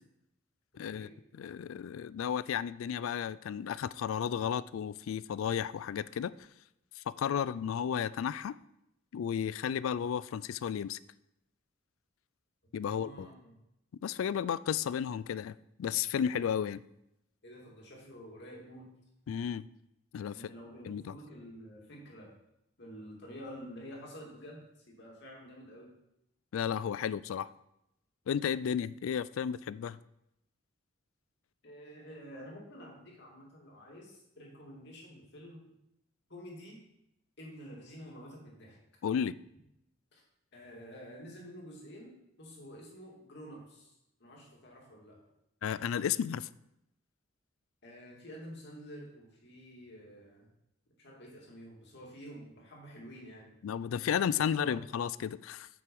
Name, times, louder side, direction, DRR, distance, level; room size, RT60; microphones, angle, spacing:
voice 1, 0.8-1.1 1.4-6.3 7.0-8.6 9.1-11.0 12.7-13.3 14.0-15.5 15.8-16.8 19.3-19.6 20.1-20.5 20.9-21.2 26.5-27.5 28.3-30.0 39.0-39.3 45.6-46.5 53.6-55.7, left 8 dB, 75° left, 19 dB, 0.3 m, -33 dB
voice 2, 12.8-13.5 17.4-18.9 20.3-22.3 22.8-25.9 31.6-35.7 36.3-36.8 37.4-38.8 40.1-40.2 40.5-45.2 47.8-50.5 51.0-53.5 54.4-54.7, equal, 55° left, -1 dB, 2.4 m, -49 dB
8.0 x 5.7 x 5.3 m, 0.83 s
head